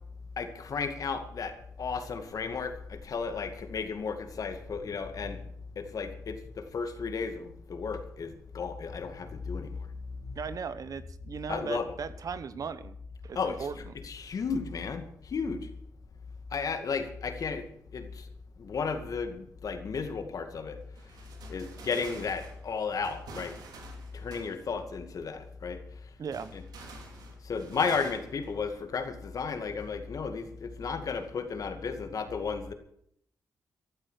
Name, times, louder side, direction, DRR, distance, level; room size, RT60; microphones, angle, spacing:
voice 1, 0.4-1.5 1.8-5.4 5.8-9.8 10.2-10.3 11.5-11.9 13.4-13.6 14.0-15.6 16.5-17.6 17.9-18.2 18.6-20.8 21.5-23.5 24.1-25.8 26.5-26.6 27.4-32.7, left 5 dB, 60° left, 7 dB, 2.3 m, -34 dB
voice 2, 10.3-13.0 13.2-13.9 26.2-26.5, right 6 dB, 60° right, 14 dB, 1.0 m, -37 dB
sound 1, 21.0-25.0 26.3-29.4 29.8-29.9 30.9-31.3, right 4 dB, 80° right, 2.7 m, -49 dB
15.0 x 12.0 x 6.5 m, 0.69 s
supercardioid pair, 50°, 7 cm